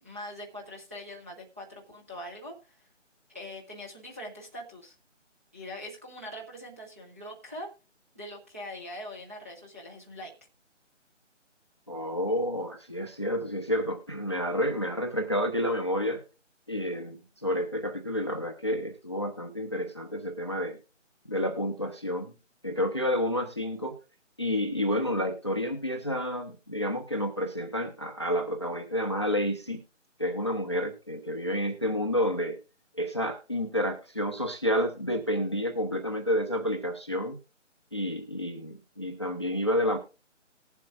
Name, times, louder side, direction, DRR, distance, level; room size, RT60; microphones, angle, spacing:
voice 1, 0.0-2.9 3.3-5.0 5.5-7.7 8.1-10.3, left 1 dB, 10° right, -4 dB, 0.8 m, -42 dB
voice 2, 11.9-16.2 16.7-20.8 21.3-22.3 22.6-23.9 24.4-29.8 30.2-32.6 32.9-37.4 37.9-40.0, equal, 20° left, 5 dB, 0.7 m, -30 dB
19.5 x 7.5 x 2.4 m, 0.32 s
figure-of-eight pair, 160°, 38 cm